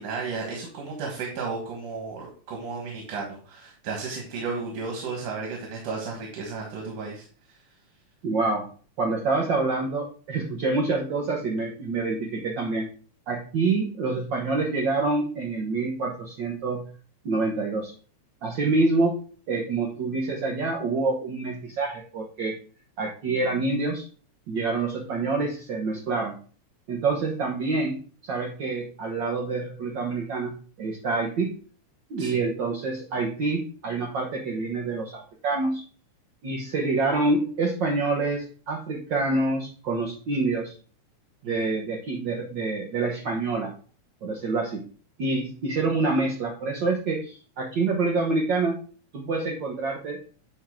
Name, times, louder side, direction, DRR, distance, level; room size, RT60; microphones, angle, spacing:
voice 1, 0.0-7.3 32.2-32.4 41.4-41.5, right 4 dB, 90° right, 0 dB, 3.1 m, -33 dB
voice 2, 8.2-8.7 9.0-12.9 13.3-16.8 17.2-17.9 18.4-19.2 19.5-22.5 23.0-24.1 24.5-26.3 26.9-31.5 32.1-35.8 36.4-40.7 41.4-43.7 44.2-44.8 45.2-48.8 49.1-50.2, right 3 dB, 60° right, -1 dB, 1.2 m, -27 dB
10.5 x 3.7 x 3.7 m, 0.40 s
omnidirectional pair, 3.5 m